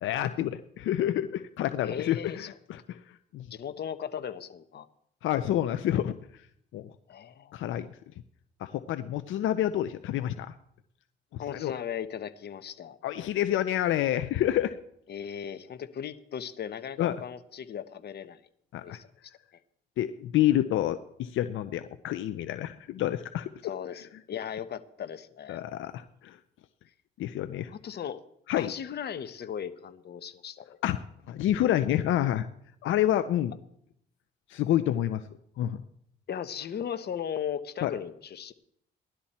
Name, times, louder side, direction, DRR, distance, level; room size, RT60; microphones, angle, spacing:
voice 1, 0.0-3.0 3.3-3.5 5.2-6.2 6.7-6.8 7.5-7.9 8.6-10.5 11.3-11.7 13.0-14.8 17.0-17.2 18.7-19.0 20.0-23.5 25.5-26.4 27.2-27.7 28.5-28.7 30.8-31.0 31.3-32.5 32.8-33.5 34.5-35.2 35.6-35.8 37.8-37.9, left 12 dB, 80° left, 11 dB, 0.7 m, -28 dB
voice 2, 1.8-2.5 3.5-4.9 7.1-7.6 11.4-13.0 15.1-18.4 18.8-19.1 23.6-25.6 27.7-28.2 28.6-30.8 36.3-38.5, left 8 dB, 55° left, 10 dB, 1.1 m, -37 dB
17.0 x 11.5 x 4.3 m, 0.70 s
cardioid pair, 90°, 20 cm